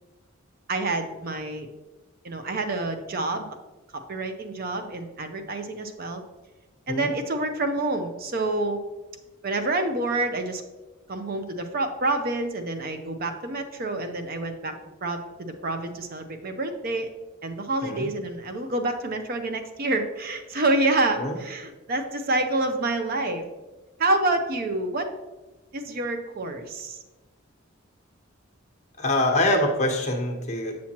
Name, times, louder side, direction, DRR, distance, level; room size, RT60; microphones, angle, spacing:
voice 1, 0.7-1.7 2.2-3.5 4.1-6.2 6.9-8.8 9.4-10.6 11.1-17.1 17.4-23.4 24.0-25.1 25.7-27.0, right 2 dB, 45° right, 7 dB, 0.5 m, -27 dB
voice 2, 29.0-30.7, left 1 dB, 35° left, 1 dB, 1.0 m, -24 dB
7.4 x 5.9 x 2.9 m, 1.1 s
head